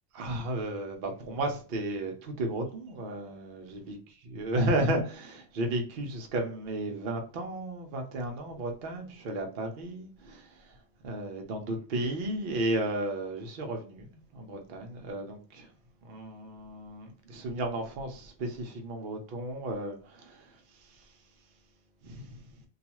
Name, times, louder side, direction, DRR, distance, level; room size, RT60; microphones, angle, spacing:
voice 1, 0.1-4.0 4.3-10.7 11.0-15.7 16.0-20.5 22.0-22.4, right 1 dB, 55° right, 0.6 m, -33 dB
2.3 x 2.3 x 2.9 m
omnidirectional pair, 1.3 m